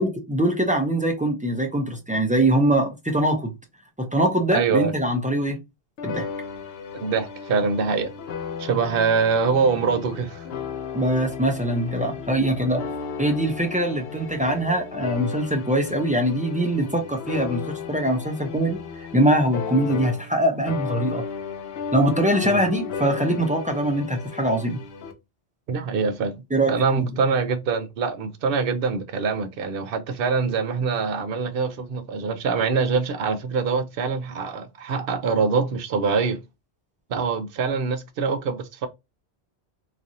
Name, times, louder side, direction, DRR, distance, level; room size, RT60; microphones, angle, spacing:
voice 1, 0.0-3.5 4.0-5.6 6.0-6.3 10.9-12.9 13.2-18.8 19.1-21.3 21.9-24.8 26.5-27.1, right 1 dB, 15° right, 0.3 m, -23 dB
voice 2, 4.5-4.9 6.9-8.1 8.6-10.4 22.4-22.6 25.7-26.4 26.7-36.4 37.1-38.9, right 5 dB, 65° right, 0.7 m, -24 dB
sound 1, 6.0-20.4 20.7-25.1, left 6 dB, 70° left, 0.9 m, -34 dB
3.1 x 2.5 x 2.6 m
omnidirectional pair, 1.1 m